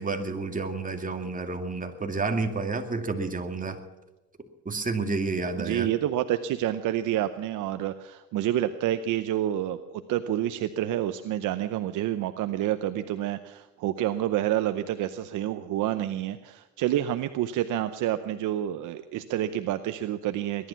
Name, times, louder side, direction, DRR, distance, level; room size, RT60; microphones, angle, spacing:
voice 1, 0.0-3.8 4.7-5.9, right 3 dB, 25° right, 5 dB, 2.4 m, -30 dB
voice 2, 5.6-20.7, right 12 dB, 85° right, 10 dB, 0.8 m, -28 dB
21.0 x 11.5 x 5.8 m, 1.1 s
cardioid pair, 90°, 30 cm